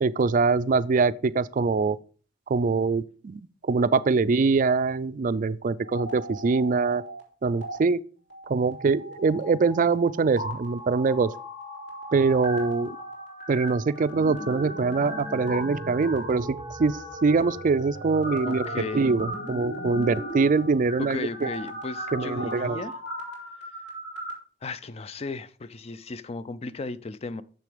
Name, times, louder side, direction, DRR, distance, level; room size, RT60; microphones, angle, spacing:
voice 1, 0.0-2.0 2.5-3.4 3.7-7.0 7.4-8.0 8.5-11.3 12.1-13.0 13.5-16.5 16.8-18.7 18.9-21.5 22.1-22.8, right 4 dB, 40° right, 0.4 m, -23 dB
sound 1, 5.8-7.2 7.5-7.8 8.3-24.3, equal, 60° left, 3.4 m, -37 dB
voice 2, 18.5-19.1 21.0-23.0 24.6-27.4, left 3 dB, 30° left, 0.4 m, -35 dB
6.9 x 6.6 x 5.0 m
head